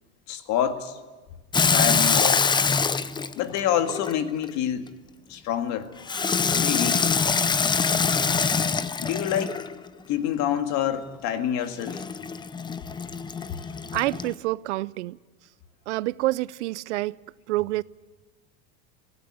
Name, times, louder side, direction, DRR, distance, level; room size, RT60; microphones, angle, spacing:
voice 1, 0.3-1.0 1.7-2.4 3.4-4.9 5.3-5.9 6.5-7.0 9.0-9.6 10.1-12.1, left 10 dB, 55° left, 2.0 m, -27 dB
Water tap faucet / Sink (filling or washing), 1.5-4.5 6.1-9.8 11.8-14.3, left 5 dB, 15° left, 0.6 m, -24 dB
voice 2, 13.9-15.2 15.9-17.2 17.5-17.8, right 18 dB, 90° right, 0.6 m, -27 dB
18.0 x 16.5 x 9.6 m
supercardioid pair, 120°, 34 cm